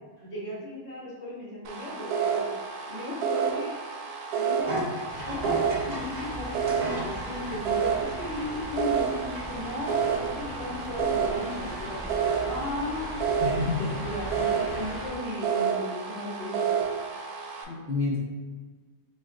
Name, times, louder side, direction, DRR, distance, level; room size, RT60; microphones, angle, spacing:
voice 1, 0.2-2.4 2.9-3.8 4.3-4.7 5.3-12.0 12.4-13.2 14.0-16.7, left 1 dB, 45° left, -8 dB, 1.5 m, -36 dB
sound 1, 1.6-17.6, right 7 dB, 90° right, 1.1 m, -30 dB
sound 2, 4.7-7.6 8.1-8.2 8.8-9.4 9.7-9.8, equal, 25° right, 0.8 m, -35 dB
sound 3, 5.1-15.1, equal, 15° left, 0.6 m, -39 dB
voice 2, 13.4-14.4 17.7-18.2, left 3 dB, 65° left, -5 dB, 0.5 m, -30 dB
4.1 x 3.2 x 2.4 m, 1.4 s
omnidirectional pair, 1.6 m